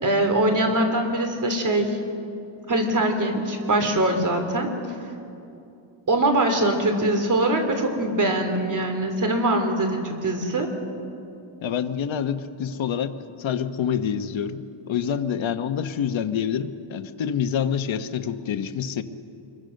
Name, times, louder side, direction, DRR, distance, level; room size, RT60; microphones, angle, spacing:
voice 1, 0.0-2.0 2.7-4.7 6.1-10.7, right 1 dB, 40° right, 5 dB, 3.2 m, -22 dB
voice 2, 11.6-19.0, left 8 dB, 65° left, 8 dB, 1.2 m, -27 dB
26.0 x 23.0 x 6.6 m, 2.6 s
wide cardioid pair, 135°, 49 cm